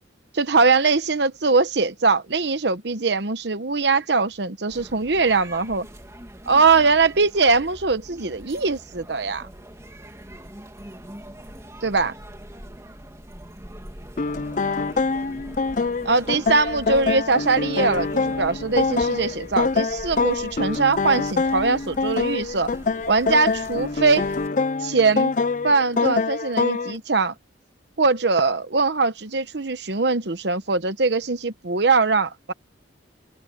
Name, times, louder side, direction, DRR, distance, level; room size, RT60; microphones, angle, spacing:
voice 1, 0.3-5.9 6.5-9.5 11.8-12.1 16.0-22.7 23.1-24.3 24.8-25.3 25.6-27.3 28.0-32.5, right 4 dB, 60° right, 1.0 m, -21 dB
sound 1, 4.7-24.5, right 1 dB, 15° right, 2.8 m, -42 dB
sound 2, 14.2-27.0, left 4 dB, 40° left, 0.4 m, -25 dB
head